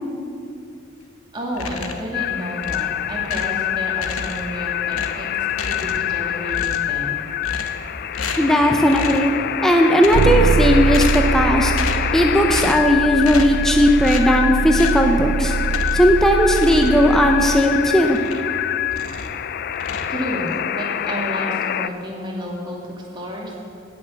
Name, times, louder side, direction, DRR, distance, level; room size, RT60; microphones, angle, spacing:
voice 1, 1.3-5.3 5.6-7.2 20.1-23.5, equal, 20° right, -3 dB, 2.3 m, -31 dB
sound 1, 1.5-2.1 2.6-3.6 3.9-4.6 4.9-6.2 6.5-7.0 7.4-7.9 8.1-8.6 8.9-9.3 9.9-10.5 10.9-11.4 11.7-12.1 12.5-12.9 13.2-13.6 14.0-14.3 14.7-15.1 15.6-16.1 16.5-18.6 18.9-19.4 19.7-20.6, left 4 dB, 85° left, 1.0 m, -32 dB
sound 2, 2.1-21.9, left 10 dB, 45° left, 0.3 m, -26 dB
voice 2, 8.4-9.3 9.6-11.7 12.1-15.5 15.9-18.2, equal, ahead, 3 dB, 0.6 m, -16 dB
sound 3, 10.1-17.6, right 4 dB, 45° right, 0.3 m, -23 dB
16.5 x 6.4 x 7.0 m, 2.5 s
head